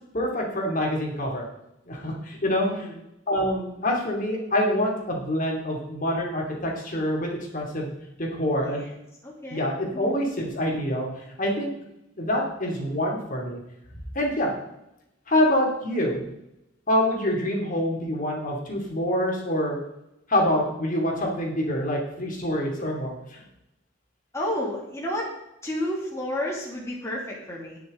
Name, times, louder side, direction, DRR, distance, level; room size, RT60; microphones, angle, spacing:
voice 1, 0.1-1.5 1.9-2.9 3.3-7.9 8.2-8.9 9.5-11.7 12.1-13.6 14.1-14.5 15.3-16.3 16.9-19.8 20.3-23.4, left 1 dB, 45° left, -1 dB, 3.0 m, -26 dB
voice 2, 2.6-3.0 8.6-8.9 9.2-10.2 24.3-25.3 25.6-27.8, left 1 dB, 15° left, -4 dB, 2.6 m, -31 dB
19.5 x 6.5 x 3.9 m, 0.85 s
head